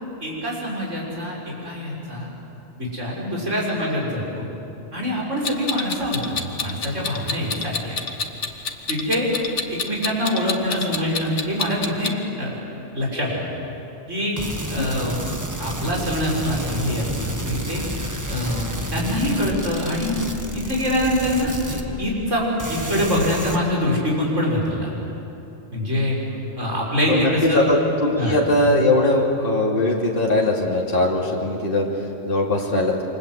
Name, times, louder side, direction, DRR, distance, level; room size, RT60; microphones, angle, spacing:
voice 1, 0.2-1.4 1.6-2.3 2.8-4.5 4.9-8.0 8.9-9.3 9.7-12.6 12.9-13.5 14.1-14.4 14.7-15.2 15.6-17.8 18.3-18.7 18.9-20.2 20.5-22.4 22.7-24.9 25.7-26.2 26.6-27.7 28.2-28.4, left 1 dB, 70° right, -4 dB, 7.0 m, -24 dB
Clock, 5.4-12.1, left 4 dB, 65° left, 1.6 m, -28 dB
sound 1, 14.4-22.3 22.6-23.6, right 1 dB, 15° right, 1.6 m, -31 dB
voice 2, 27.1-31.8 32.3-32.9, left 1 dB, 45° left, -2 dB, 3.0 m, -20 dB
28.0 x 25.5 x 8.2 m, 3.0 s
omnidirectional pair, 1.3 m